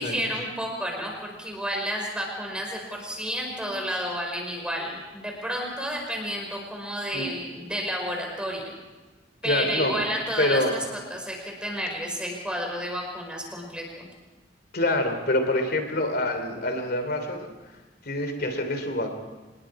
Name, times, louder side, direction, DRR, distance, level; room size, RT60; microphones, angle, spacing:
voice 1, 0.0-8.7 9.4-10.8 11.1-14.1, equal, 5° right, 0 dB, 5.3 m, -31 dB
voice 2, 9.4-10.0 10.4-10.7 14.7-17.5 18.0-19.2, left 1 dB, 60° left, 6 dB, 3.1 m, -26 dB
26.5 x 21.0 x 4.9 m, 1.2 s
head